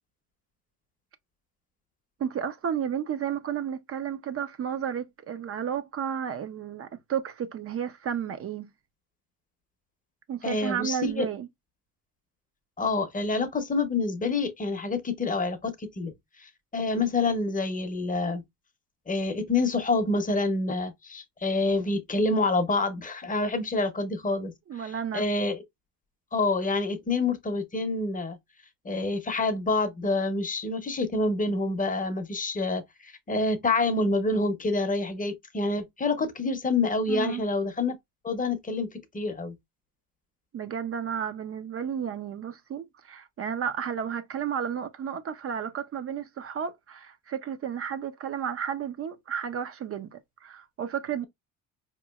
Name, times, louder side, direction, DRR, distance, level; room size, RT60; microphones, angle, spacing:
voice 1, 2.2-8.7 10.3-11.5 24.7-25.2 37.1-37.4 40.5-51.2, right 8 dB, 35° right, 0.4 m, -32 dB
voice 2, 10.4-11.2 12.8-16.1 16.4-18.4 19.1-24.5 24.8-25.6 26.3-28.4 28.8-38.0 38.2-38.9 39.1-39.6, left 3 dB, 20° left, 0.7 m, -27 dB
4.8 x 2.9 x 2.3 m
cardioid pair, 125°, 39 cm